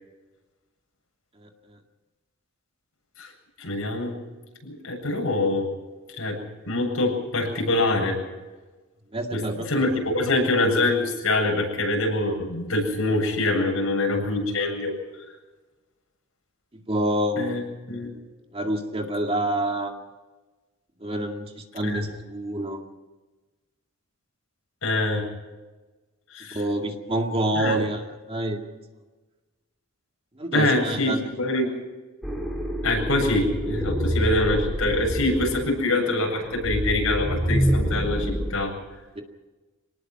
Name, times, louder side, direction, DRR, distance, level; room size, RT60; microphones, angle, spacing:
voice 1, 3.6-4.1 4.6-5.7 6.2-6.4 6.6-8.2 9.3-15.0 17.4-17.6 17.9-18.1 21.8-22.0 24.8-25.2 26.3-26.6 27.5-27.8 30.5-31.7 32.8-38.7, left 2 dB, 85° left, 1 dB, 8.0 m, -24 dB
voice 2, 9.1-9.9 16.9-17.5 18.5-19.9 21.0-22.8 26.5-28.0 28.3-28.6 30.4-31.2 39.2-39.3, right 1 dB, 25° right, 3 dB, 2.1 m, -27 dB
sound 1, 32.2-38.5, equal, ahead, 4.4 m, -27 dB
25.5 x 19.0 x 6.0 m, 1.2 s
head